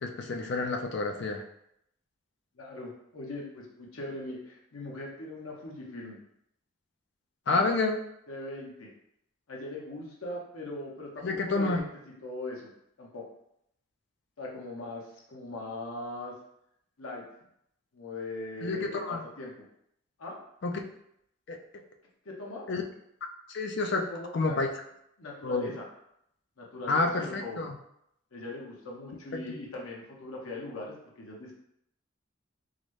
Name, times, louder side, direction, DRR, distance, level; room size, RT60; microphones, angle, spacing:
voice 1, 0.0-1.4 7.5-8.0 11.2-11.9 18.6-19.2 20.6-20.9 21.5-21.6 22.7-22.8 23.5-24.1 24.3-24.7 25.4-25.7 26.9-27.7 29.3-29.6, left 3 dB, 55° left, 4 dB, 0.4 m, -29 dB
voice 2, 2.6-6.2 7.5-7.7 8.3-8.9 9.5-11.9 12.2-12.7 13.0-13.2 14.4-16.3 17.0-17.2 17.9-19.6 20.2-20.4 22.2-22.7 24.1-24.6 25.2-25.9 26.6-27.6 28.3-31.5, left 2 dB, 80° left, -2 dB, 0.8 m, -40 dB
3.8 x 2.1 x 3.1 m, 0.75 s
head